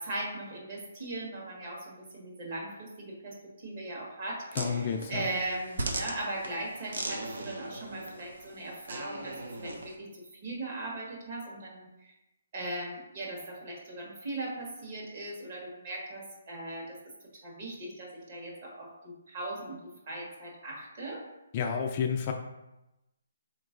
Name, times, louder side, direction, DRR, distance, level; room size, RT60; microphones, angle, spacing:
voice 1, 0.0-3.4 3.6-12.1 12.5-17.0 17.4-21.2, right 2 dB, 40° right, -3 dB, 1.4 m, -39 dB
sound 1, 4.5-10.0, right 2 dB, 75° right, 0.8 m, -39 dB
voice 2, 4.6-5.2 21.5-22.3, left 7 dB, 30° left, 3 dB, 0.3 m, -30 dB
4.4 x 3.0 x 3.7 m, 0.95 s
hypercardioid pair, 160°, 0 cm